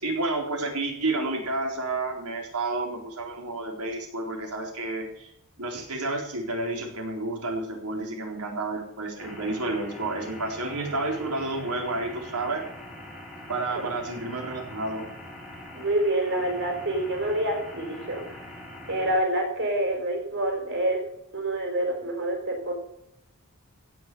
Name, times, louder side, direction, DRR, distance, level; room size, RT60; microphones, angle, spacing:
voice 1, 0.0-5.3 5.6-12.7 13.5-15.1, right 2 dB, 85° right, 1 dB, 4.1 m, -30 dB
sound 1, 9.2-19.2, left 1 dB, ahead, 4.3 m, -43 dB
voice 2, 15.7-18.2 18.9-21.0 21.3-22.7, right 1 dB, 55° right, 3 dB, 4.5 m, -27 dB
16.0 x 6.6 x 7.9 m, 0.78 s
head